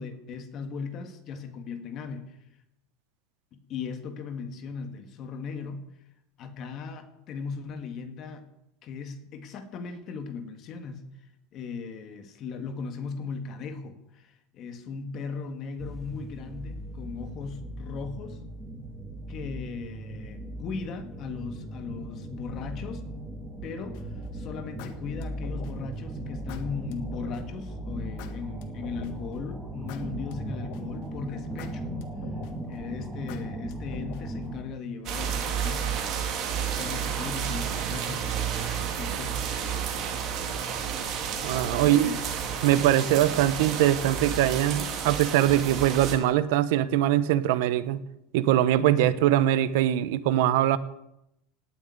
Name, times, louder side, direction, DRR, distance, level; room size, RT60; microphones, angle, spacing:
voice 1, 0.0-2.4 3.5-5.9 6.4-8.5 8.8-11.0 11.5-18.4 19.3-23.1 23.6-32.0 32.6-36.0 36.5-39.5 41.7-42.6, left 5 dB, 35° left, 1.8 m, -38 dB
sound 1, 15.8-34.6, right 1 dB, 5° right, 2.6 m, -38 dB
sound 2, 23.9-24.2 24.8-25.9 26.5-27.4 28.2-29.3 29.9-31.0 31.6-32.7 33.3-34.4, left 9 dB, 55° left, 1.7 m, -47 dB
sound 3, 35.1-46.2, right 8 dB, 40° right, 2.9 m, -31 dB
voice 2, 41.4-42.1 42.6-48.0 48.3-50.8, right 12 dB, 70° right, 1.0 m, -22 dB
18.5 x 7.3 x 9.4 m
supercardioid pair, 170°, 0 cm